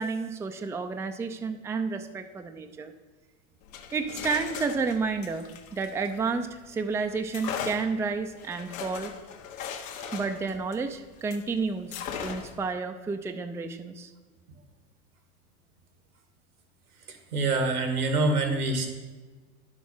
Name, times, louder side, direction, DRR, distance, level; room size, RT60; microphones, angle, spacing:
voice 1, 0.0-2.9 3.9-5.5 5.7-9.1 10.0-14.1, right 4 dB, 5° right, 7 dB, 0.5 m, -31 dB
sound 1, 3.6-6.7 7.3-11.5 11.9-12.7, left 7 dB, 65° left, 1.5 m, -38 dB
voice 2, 17.1-18.9, right 2 dB, 90° right, 5 dB, 2.0 m, -26 dB
10.5 x 6.4 x 5.5 m, 1.3 s
hypercardioid pair, 100°, 43 cm